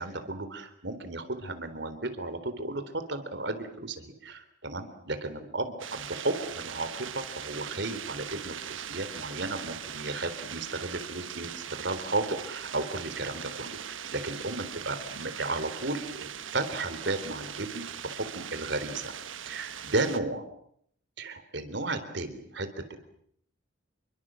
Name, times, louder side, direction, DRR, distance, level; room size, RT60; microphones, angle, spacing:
voice 1, 0.0-19.1 19.5-20.4 21.2-23.0, right 2 dB, 60° right, 9 dB, 3.8 m, -34 dB
sound 1, 5.8-20.2, right 8 dB, 80° right, 1.3 m, -40 dB
28.5 x 24.0 x 7.7 m, 0.69 s
head